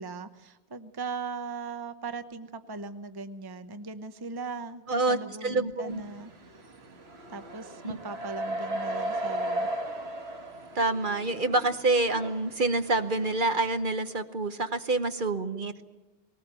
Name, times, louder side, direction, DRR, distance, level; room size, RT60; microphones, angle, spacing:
voice 1, 0.0-6.3 7.3-9.7, right 4 dB, 25° right, 10 dB, 0.8 m, -39 dB
voice 2, 4.9-6.0 7.8-8.0 10.7-15.8, right 2 dB, 50° right, 8 dB, 1.1 m, -27 dB
sound 1, 5.9-13.8, right 1 dB, 65° right, 1.8 m, -36 dB
20.0 x 19.0 x 8.9 m, 1.1 s
omnidirectional pair, 1.1 m